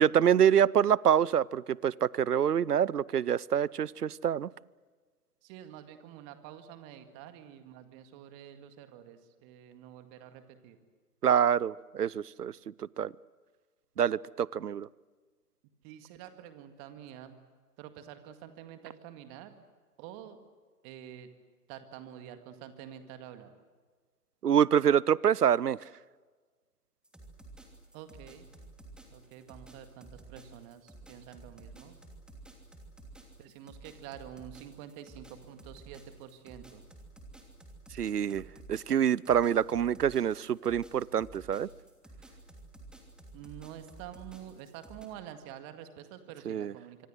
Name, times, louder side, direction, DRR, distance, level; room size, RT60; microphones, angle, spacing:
voice 1, 0.0-4.5 11.2-12.5 13.0-13.1 14.0-14.9 24.4-25.8 38.0-38.4 38.7-41.7 46.5-46.7, right 9 dB, 75° right, 24 dB, 0.7 m, -26 dB
voice 2, 5.4-10.8 15.8-17.4 17.8-19.5 20.0-20.4 20.8-21.3 21.7-23.5 27.9-28.5 29.1-32.0 33.4-36.8 43.3-47.1, right 10 dB, 25° right, 8 dB, 2.0 m, -48 dB
sound 1, 27.0-45.1, right 2 dB, ahead, 2.8 m, -52 dB
25.0 x 25.0 x 7.9 m, 1.4 s
figure-of-eight pair, 125°, 47 cm